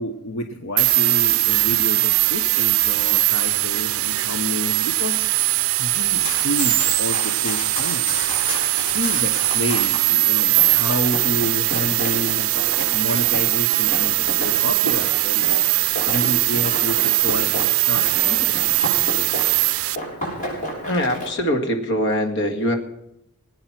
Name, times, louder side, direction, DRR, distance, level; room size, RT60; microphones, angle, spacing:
voice 1, 0.0-5.2 5.5-8.1 8.9-12.5 12.9-15.5 16.1-18.8, left 1 dB, 80° left, 5 dB, 1.1 m, -29 dB
sound 1, 0.8-20.0, right 18 dB, 75° right, 0.5 m, -20 dB
Run, 6.0-10.0 10.6-19.7 19.9-21.3, equal, 40° left, 6.9 m, -32 dB
voice 2, 20.9-22.7, equal, 60° left, 4 dB, 2.1 m, -22 dB
21.0 x 9.6 x 6.0 m, 0.85 s
head